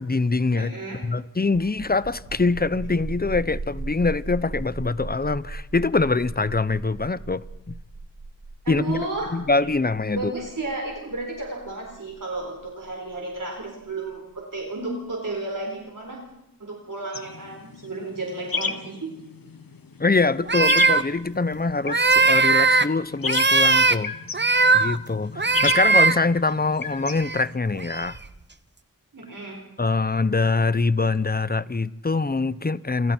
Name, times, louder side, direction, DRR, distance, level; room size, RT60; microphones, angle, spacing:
voice 1, 0.0-0.7 1.0-7.8 8.7-9.1 9.3-10.3 20.0-24.1 24.7-28.2 29.8-33.1, left 3 dB, 30° left, 0.8 m, -24 dB
voice 2, 0.5-1.0 8.6-9.4 10.1-16.2 16.6-19.1 29.1-29.6, right 2 dB, 65° right, 4.4 m, -32 dB
sound 1, 1.4-14.8, right 3 dB, 90° right, 4.0 m, -37 dB
sound 2, 17.1-27.6, left 5 dB, 85° left, 1.3 m, -34 dB
sound 3, 20.5-21.0 21.9-22.9 23.2-24.0 24.3-25.0 25.4-26.2 27.1-27.4 27.8-28.3, right 3 dB, 30° right, 1.0 m, -19 dB
28.5 x 27.5 x 4.5 m
wide cardioid pair, 65°, 34 cm